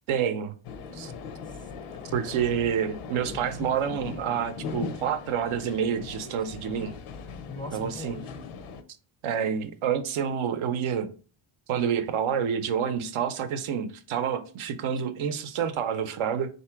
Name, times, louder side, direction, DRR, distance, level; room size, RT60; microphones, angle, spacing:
voice 1, 0.1-0.5 0.9-1.1 2.1-6.9 7.7-8.2 9.2-11.1 11.7-16.5, right 8 dB, 75° right, 0.7 m, -28 dB
sound 1, 0.6-8.8, left 5 dB, 90° left, 0.7 m, -39 dB
voice 2, 0.9-2.1 3.2-3.6 7.4-8.4, left 2 dB, 10° left, 0.4 m, -43 dB
3.7 x 2.8 x 4.5 m
cardioid pair, 140°, 49 cm